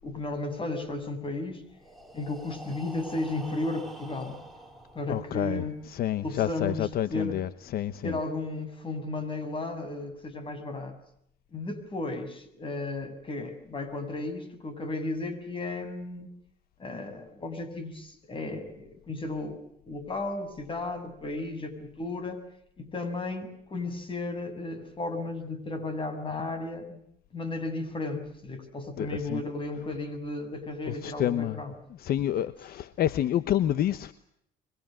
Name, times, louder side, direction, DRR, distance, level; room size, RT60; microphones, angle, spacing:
voice 1, 0.0-1.6 2.1-4.4 5.0-5.8 6.2-7.4 8.0-10.9 11.5-16.3 16.8-22.4 22.8-27.0 27.3-31.7, left 2 dB, 30° left, 9 dB, 7.0 m, -34 dB
Breathing, 1.7-5.6, right 1 dB, ahead, 5.0 m, -46 dB
voice 2, 5.1-5.6 5.9-8.2 29.0-29.4 30.9-31.6 32.0-34.1, left 11 dB, 65° left, 13 dB, 1.1 m, -28 dB
26.5 x 23.5 x 7.7 m, 0.74 s
cardioid pair, 110°, 17 cm